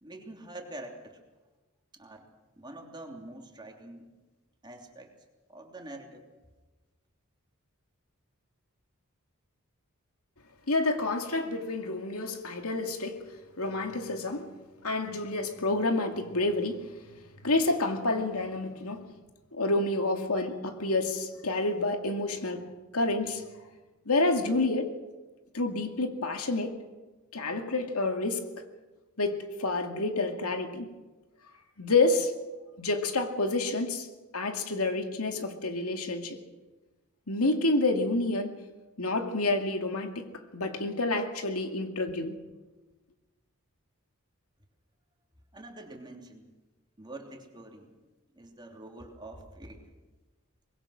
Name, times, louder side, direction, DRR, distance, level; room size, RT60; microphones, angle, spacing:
voice 1, 0.0-1.2 1.9-2.3 2.6-4.1 4.6-5.1 5.5-6.2 45.5-46.5 47.0-48.0 48.3-49.8, right 1 dB, 20° right, 3.1 m, -45 dB
voice 2, 10.7-13.2 13.6-14.5 14.8-17.0 17.4-19.1 19.5-22.7 22.9-23.4 24.1-25.0 25.5-26.8 27.3-28.5 29.2-31.0 31.8-32.4 32.8-34.1 34.3-36.4 37.3-38.6 39.0-42.4, left 2 dB, 85° left, 2.3 m, -29 dB
24.5 x 21.5 x 6.5 m
head